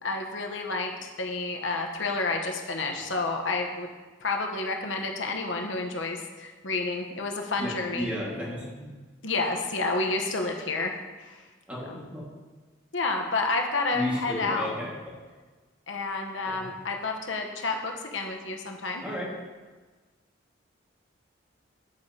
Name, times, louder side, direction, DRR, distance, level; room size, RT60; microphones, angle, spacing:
voice 1, 0.0-3.9 4.2-8.1 9.2-10.9 11.3-11.4 11.9-12.0 12.9-14.7 15.9-19.0, left 3 dB, 75° left, 2 dB, 1.1 m, -30 dB
voice 2, 7.6-8.8 11.7-12.2 13.9-14.9 16.6-16.7 19.0-19.4, left 1 dB, 5° right, -5 dB, 2.0 m, -33 dB
11.5 x 8.1 x 2.9 m, 1.3 s
head